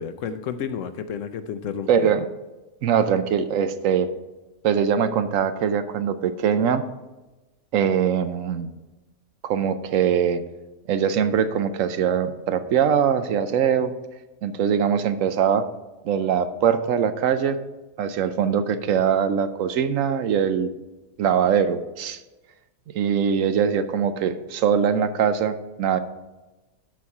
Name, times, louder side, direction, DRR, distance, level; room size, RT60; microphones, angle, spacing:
voice 1, 0.0-2.2, left 7 dB, 75° left, 10 dB, 1.0 m, -31 dB
voice 2, 1.9-2.2 2.8-4.1 4.6-6.8 7.7-8.7 9.4-10.4 10.9-13.9 14.4-15.7 16.0-17.6 18.0-20.7 21.2-22.2 22.9-26.0, right 8 dB, 80° right, 11 dB, 1.1 m, -22 dB
12.5 x 4.3 x 4.7 m, 1.1 s
omnidirectional pair, 1.4 m